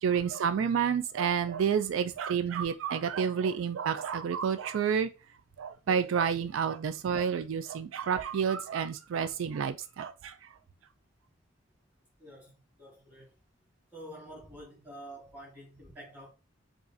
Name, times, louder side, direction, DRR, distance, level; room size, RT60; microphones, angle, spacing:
voice 1, 0.0-5.1 5.6-10.3, right 7 dB, 85° right, 0.3 m, -29 dB
voice 2, 12.2-12.5 12.8-13.3 13.9-16.3, right 1 dB, 10° right, 1.7 m, -48 dB
4.8 x 2.4 x 2.6 m
head